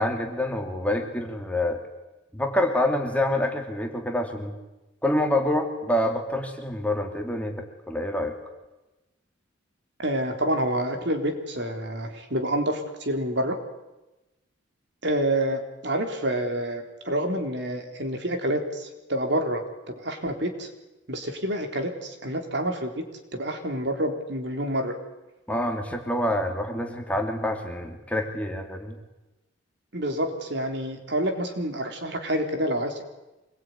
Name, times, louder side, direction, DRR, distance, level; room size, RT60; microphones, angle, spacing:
voice 1, 0.0-1.8 2.3-4.5 5.0-8.3 25.5-29.0, left 1 dB, 5° left, 3 dB, 2.8 m, -27 dB
voice 2, 10.0-13.6 15.0-20.7 21.1-23.1 23.3-25.0 29.9-33.0, right 1 dB, 55° right, 5 dB, 3.7 m, -28 dB
26.0 x 21.5 x 9.7 m, 1.0 s
head